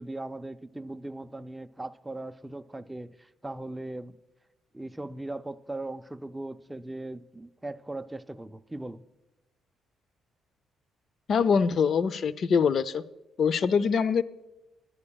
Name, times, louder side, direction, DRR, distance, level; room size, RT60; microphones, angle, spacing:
voice 1, 0.0-4.2 4.7-9.0, right 2 dB, 10° right, 10 dB, 0.5 m, -39 dB
voice 2, 11.3-13.0 13.4-14.2, left 6 dB, 55° left, 16 dB, 0.5 m, -24 dB
22.0 x 11.0 x 2.3 m, 1.0 s
cardioid pair, 90°, 0 cm